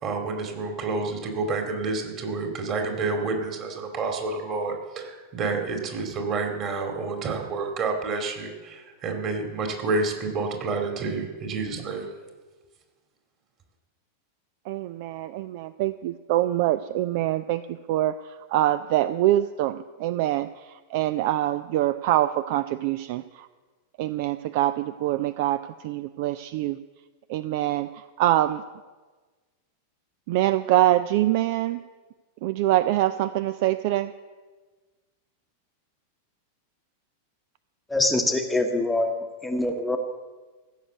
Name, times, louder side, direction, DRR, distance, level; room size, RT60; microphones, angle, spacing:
voice 1, 0.0-12.1, right 3 dB, 35° right, 3 dB, 2.5 m, -29 dB
voice 2, 14.7-17.6 17.9-18.1 18.5-20.5 20.9-23.2 24.0-26.8 27.3-27.9 28.2-28.6 30.3-31.8 32.4-34.1, right 14 dB, 50° right, 14 dB, 0.4 m, -24 dB
voice 3, 37.9-39.1 39.4-40.0, left 2 dB, 5° left, 5 dB, 1.0 m, -24 dB
15.0 x 6.4 x 8.0 m, 1.3 s
figure-of-eight pair, 90°, 0 cm